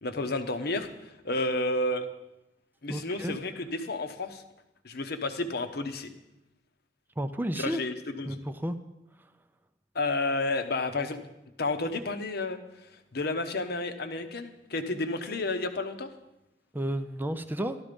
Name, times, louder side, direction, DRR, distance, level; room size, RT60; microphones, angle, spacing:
voice 1, 0.0-2.1 2.8-4.4 4.8-6.1 7.6-8.4 9.9-11.2 11.6-12.6 12.8-16.1, left 2 dB, 60° left, 8 dB, 1.0 m, -31 dB
voice 2, 2.9-3.4 7.2-7.8 8.3-8.8 16.7-17.8, right 1 dB, 10° right, 8 dB, 0.5 m, -32 dB
12.5 x 12.5 x 5.2 m, 0.93 s
head